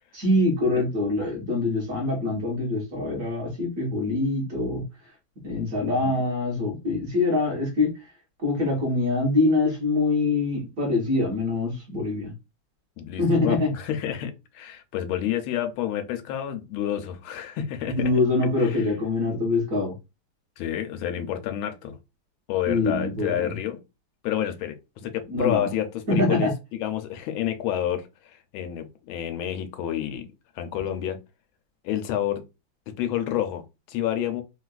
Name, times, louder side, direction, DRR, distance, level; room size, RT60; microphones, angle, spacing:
voice 1, 0.1-4.8 5.4-7.9 8.4-12.3 13.2-13.7 17.9-19.9 22.7-23.5 25.3-25.7 26.1-26.5, left 2 dB, 45° right, 1.4 m, -24 dB
voice 2, 5.8-6.1 13.0-18.1 18.6-18.9 20.6-22.0 22.5-23.8 24.2-24.8 25.0-30.3 30.6-31.2 31.8-32.4 32.9-34.4, left 11 dB, 90° left, 1.4 m, -29 dB
3.6 x 2.3 x 2.3 m
omnidirectional pair, 2.2 m